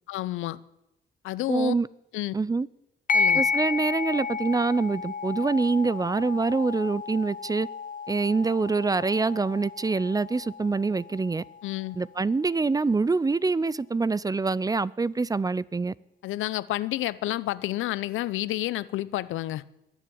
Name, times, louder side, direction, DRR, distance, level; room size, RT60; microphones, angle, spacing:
voice 1, 0.1-0.6 1.2-1.7 2.1-2.3 3.1-3.4 11.6-12.0 16.2-19.6, left 15 dB, 85° left, 18 dB, 0.7 m, -30 dB
voice 2, 1.5-1.9 2.3-2.7 3.3-7.7 8.1-11.4 12.0-15.9, right 3 dB, 20° right, 22 dB, 0.5 m, -25 dB
sound 1, 3.1-12.1, left 4 dB, 40° left, 1.0 m, -31 dB
21.5 x 7.5 x 8.7 m, 0.87 s
cardioid pair, 90°, 20 cm